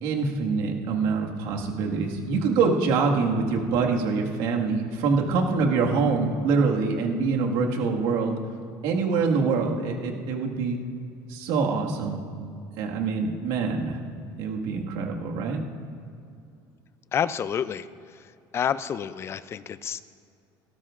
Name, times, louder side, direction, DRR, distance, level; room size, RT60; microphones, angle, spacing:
voice 1, 0.0-8.4 8.8-10.8 11.3-12.2 12.8-14.0 14.4-15.6, right 4 dB, 80° right, 0 dB, 1.8 m, -25 dB
voice 2, 17.1-17.9 18.5-20.0, left 8 dB, 30° left, 15 dB, 0.4 m, -28 dB
18.5 x 16.5 x 2.5 m, 2.5 s
cardioid pair, 150°, 9 cm